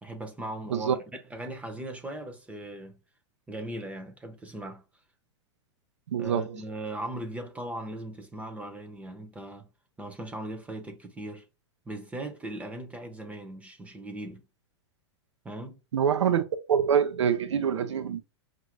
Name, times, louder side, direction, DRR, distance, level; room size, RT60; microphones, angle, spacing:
voice 1, 0.0-3.0 3.5-4.8 6.2-9.7 10.0-11.5 11.9-14.4 15.4-15.8, right 1 dB, 10° right, 0.8 m, -38 dB
voice 2, 6.1-6.5 15.9-16.4 16.7-18.2, right 8 dB, 85° right, 0.6 m, -25 dB
5.2 x 2.6 x 3.0 m
hypercardioid pair, 120°, 15 cm